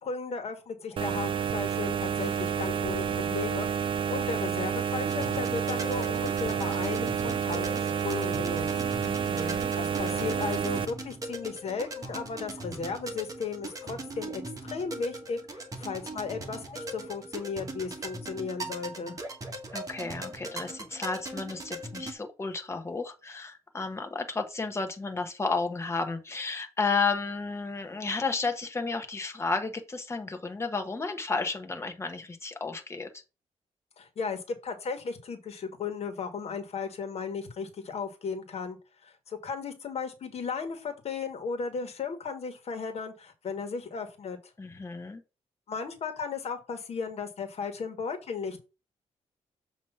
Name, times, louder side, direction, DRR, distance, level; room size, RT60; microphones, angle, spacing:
voice 1, 0.0-8.7 9.7-19.2 34.0-38.8 39.0-44.4 45.7-48.6, left 5 dB, 60° left, 1.6 m, -35 dB
sound 1, 1.0-10.9, right 7 dB, 45° right, 0.5 m, -29 dB
sound 2, 5.0-22.1, right 2 dB, 30° right, 1.4 m, -40 dB
voice 2, 9.0-9.7 19.7-33.1 44.6-45.2, left 4 dB, 25° left, 1.2 m, -32 dB
7.2 x 3.0 x 5.6 m
cardioid pair, 110°, 12 cm